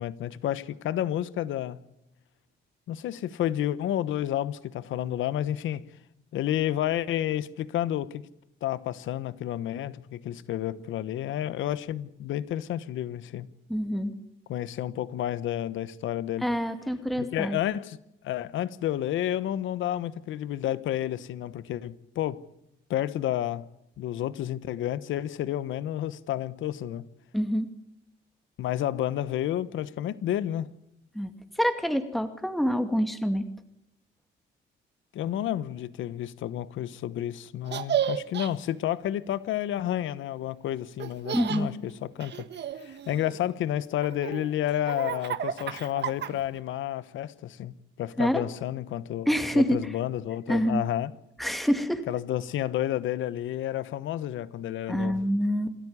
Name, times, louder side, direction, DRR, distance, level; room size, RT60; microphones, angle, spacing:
voice 1, 0.0-1.8 2.9-5.8 6.3-8.3 8.6-13.5 14.5-16.5 17.2-18.0 18.2-22.4 22.9-23.7 24.0-27.0 28.6-30.7 35.1-42.5 42.8-51.1 52.1-55.2, left 12 dB, 80° left, 1.1 m, -30 dB
voice 2, 13.7-14.1 16.4-17.6 27.3-27.7 31.1-31.3 31.6-33.4 41.3-41.7 48.2-48.4 49.3-49.9 50.5-50.8 51.4-52.0 54.9-55.8, equal, ahead, 2.4 m, -26 dB
Laughter, 37.7-38.5 41.0-41.6 42.2-43.5 44.0-46.6, right 9 dB, 60° right, 1.6 m, -32 dB
28.0 x 13.5 x 9.7 m
cardioid pair, 90°, 20 cm